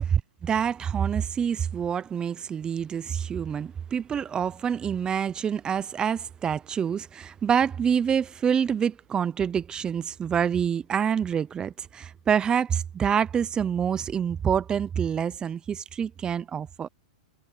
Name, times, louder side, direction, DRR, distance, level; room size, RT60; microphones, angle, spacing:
voice 1, 0.0-16.9, right 8 dB, 20° right, 0.6 m, -27 dB
hypercardioid pair, 130°, 4 cm